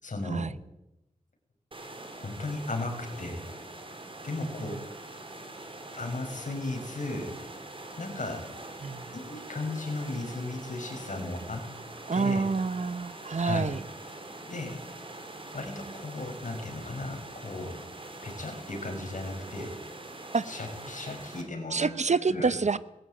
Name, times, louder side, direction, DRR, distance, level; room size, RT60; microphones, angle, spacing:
voice 1, 0.0-0.5 2.2-3.5 4.2-4.7 5.9-7.4 8.0-8.5 9.1-11.7 12.1-12.4 13.4-13.8 14.5-14.8 15.5-17.8 18.2-19.7 20.4-21.9 22.3-22.6, left 2 dB, 70° left, 3 dB, 5.9 m, -35 dB
sound 1, 1.7-21.4, right 2 dB, 40° right, 4.4 m, -44 dB
voice 2, 4.4-4.7 8.8-9.0 12.1-13.8 20.3-20.4 21.7-22.8, right 4 dB, 60° right, 15 dB, 1.0 m, -27 dB
20.0 x 15.5 x 9.0 m, 0.90 s
wide cardioid pair, 85°, 14 cm